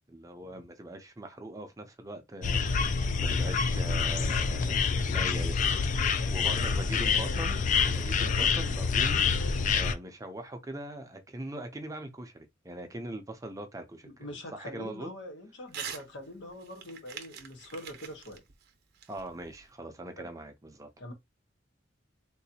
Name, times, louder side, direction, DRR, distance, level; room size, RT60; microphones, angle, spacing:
voice 1, 0.1-4.8 5.1-15.1 19.1-20.9, right 1 dB, 15° right, 0.5 m, -42 dB
sound 1, 2.4-9.9, left 5 dB, 40° left, 0.3 m, -27 dB
voice 2, 14.0-18.4 20.2-20.3 21.0-21.1, left 1 dB, 65° left, 1.0 m, -43 dB
Crumpling crinkling / Tearing, 15.7-16.1 16.4-19.7, right 8 dB, 55° right, 0.7 m, -44 dB
3.8 x 2.6 x 2.7 m
head